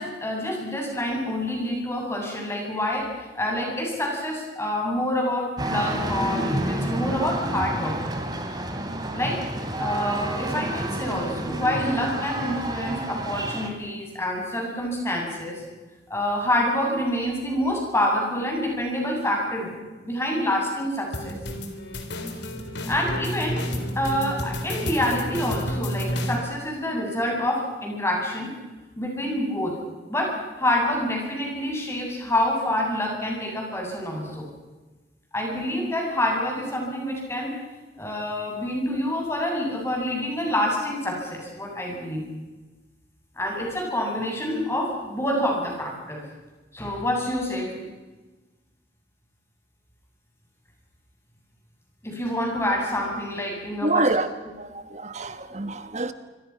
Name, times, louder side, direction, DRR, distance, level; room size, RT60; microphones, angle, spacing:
voice 1, 0.0-8.0 9.1-9.4 9.8-15.6 16.1-19.7 20.0-21.4 22.9-23.6 24.0-28.5 29.0-29.8 30.1-34.5 35.3-37.5 38.0-42.2 43.4-46.2 46.7-47.8 52.0-54.1 55.5-55.6, left 1 dB, 15° left, 7.9 m, -27 dB
sound 1, 5.6-13.7, right 1 dB, 25° right, 3.0 m, -29 dB
sound 2, 21.1-26.4, equal, 85° left, 3.9 m, -30 dB
voice 2, 53.8-54.3 54.6-56.1, right 2 dB, 40° right, 1.6 m, -26 dB
26.0 x 25.0 x 6.0 m
head